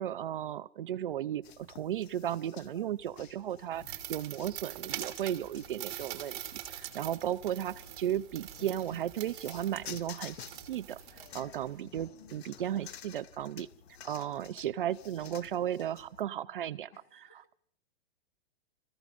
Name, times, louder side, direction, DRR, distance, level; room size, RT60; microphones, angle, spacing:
voice 1, 0.0-6.4 6.7-13.7 14.0-16.9, right 11 dB, 55° right, 15 dB, 0.5 m, -35 dB
sound 1, 1.4-16.2, left 9 dB, 75° left, 0.7 m, -52 dB
sound 2, 3.7-11.8, right 12 dB, 25° right, 1.4 m, -44 dB
voice 2, 6.9-7.2 11.4-12.5 16.5-17.5, left 6 dB, 20° left, 8 dB, 0.8 m, -63 dB
29.0 x 15.0 x 2.5 m, 0.64 s
hypercardioid pair, 175°, 32 cm